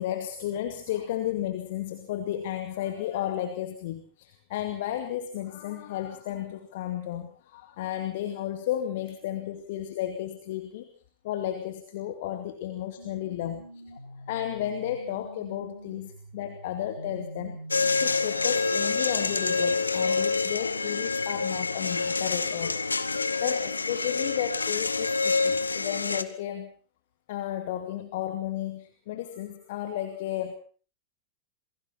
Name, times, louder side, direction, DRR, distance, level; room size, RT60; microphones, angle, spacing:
voice 1, 0.0-10.9 11.2-14.0 14.3-17.6 18.0-26.7 27.3-30.5, left 11 dB, 55° left, 6 dB, 2.3 m, -33 dB
sound 1, 13.0-18.9, right 1 dB, 90° right, 1.6 m, -45 dB
sound 2, 17.7-26.2, left 4 dB, 80° left, 1.1 m, -27 dB
28.0 x 21.0 x 4.4 m, 0.42 s
figure-of-eight pair, 90°, 0 cm